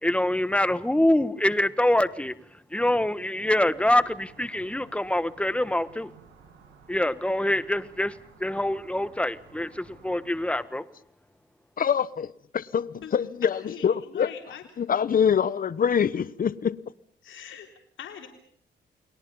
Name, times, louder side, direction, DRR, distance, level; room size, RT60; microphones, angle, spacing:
voice 1, 0.0-2.4 2.7-6.1 6.9-10.8, left 1 dB, 5° left, 1.3 m, -25 dB
sound 1, 3.6-10.5, right 6 dB, 85° right, 7.3 m, -55 dB
voice 2, 11.8-13.5 13.8-14.3 14.8-16.8, left 7 dB, 45° left, 1.0 m, -24 dB
voice 3, 13.4-14.7 17.2-17.7 18.0-18.3, left 8 dB, 80° left, 3.6 m, -41 dB
30.0 x 22.0 x 5.6 m
cardioid pair, 90°, 20 cm